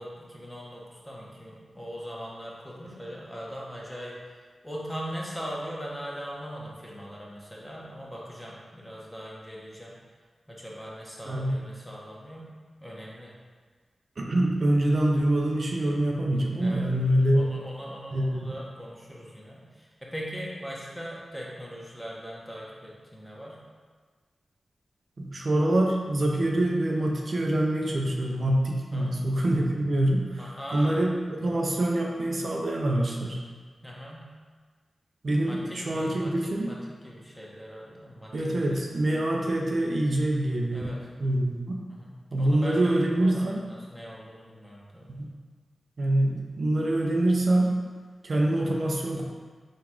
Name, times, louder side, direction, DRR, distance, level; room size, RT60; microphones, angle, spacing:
voice 1, 0.0-4.4 4.6-9.9 10.5-12.5 12.8-13.3 16.6-16.8 17.3-23.6 28.9-29.2 30.3-31.0 33.8-34.2 35.4-36.8 37.0-38.9 40.7-41.0 41.9-45.3, equal, 10° left, -4 dB, 1.1 m, -40 dB
voice 2, 11.3-11.6 14.2-17.4 18.1-18.5 25.2-31.1 31.4-33.4 35.2-36.7 38.3-41.8 42.3-43.6 45.1-45.3 46.0-47.8 48.2-49.2, right 1 dB, 60° right, -1 dB, 0.5 m, -25 dB
3.9 x 2.4 x 4.4 m, 1.5 s
cardioid pair, 40°, 0 cm